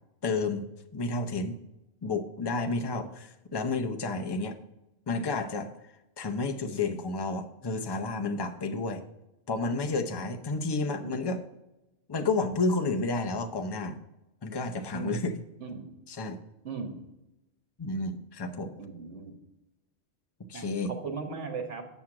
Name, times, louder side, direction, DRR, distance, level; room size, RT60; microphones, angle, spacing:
voice 1, 0.2-1.6 2.0-4.6 5.1-5.7 6.2-9.0 9.5-11.4 12.1-14.0 14.4-15.3 16.1-16.4 17.8-18.7 20.5-20.9, left 3 dB, 30° left, 5 dB, 0.5 m, -31 dB
voice 2, 16.6-17.0 18.8-19.4 20.5-21.9, right 4 dB, 75° right, 4 dB, 1.6 m, -37 dB
8.1 x 5.9 x 4.8 m, 0.95 s
omnidirectional pair, 1.2 m